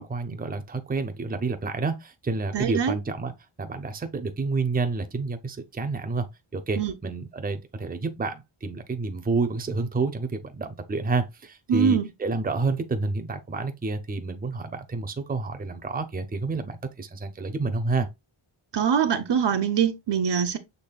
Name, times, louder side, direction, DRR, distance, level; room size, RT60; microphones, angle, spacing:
voice 1, 0.0-3.3 3.6-6.3 6.5-18.1, right 3 dB, 20° right, 0.6 m, -29 dB
voice 2, 2.5-3.0 6.8-6.9 11.7-12.1 18.7-20.6, right 7 dB, 55° right, 0.8 m, -23 dB
6.8 x 3.3 x 2.3 m
wide cardioid pair, 110°, 49 cm